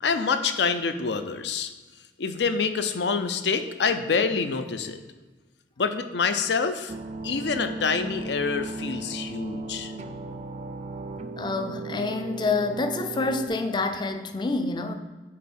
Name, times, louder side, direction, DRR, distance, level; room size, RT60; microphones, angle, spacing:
voice 1, 0.0-1.7 2.2-5.0 5.8-6.9 7.2-9.9, left 5 dB, 75° left, 9 dB, 0.5 m, -26 dB
sound 1, 6.9-13.5, right 3 dB, 40° right, 0.4 m, -36 dB
voice 2, 11.4-14.9, left 3 dB, 25° left, 7 dB, 0.4 m, -27 dB
8.3 x 3.1 x 4.3 m, 1.3 s
head